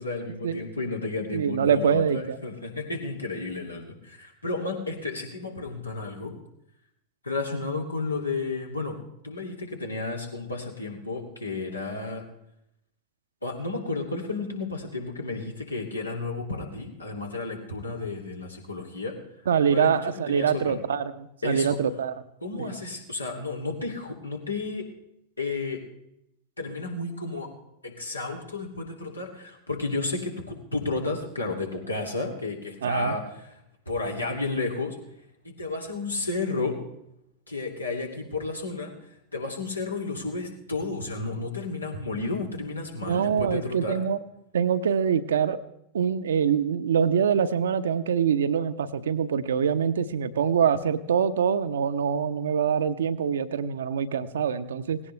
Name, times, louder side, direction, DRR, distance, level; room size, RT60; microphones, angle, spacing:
voice 1, 0.0-6.4 7.2-9.0 9.2-12.2 13.4-19.1 19.7-20.8 21.4-21.8 22.4-24.9 25.4-25.8 26.6-27.5 27.8-33.2 33.9-35.0 35.4-36.8 37.5-38.9 39.3-44.0, left 3 dB, 80° left, 1 dB, 2.6 m, -32 dB
voice 2, 1.3-2.4 19.5-22.2 22.6-22.8 32.8-33.2 43.1-44.2 44.5-45.6 45.9-55.0, right 7 dB, 65° right, 11 dB, 0.9 m, -24 dB
18.5 x 17.0 x 3.3 m, 0.79 s
figure-of-eight pair, 90°, 0 cm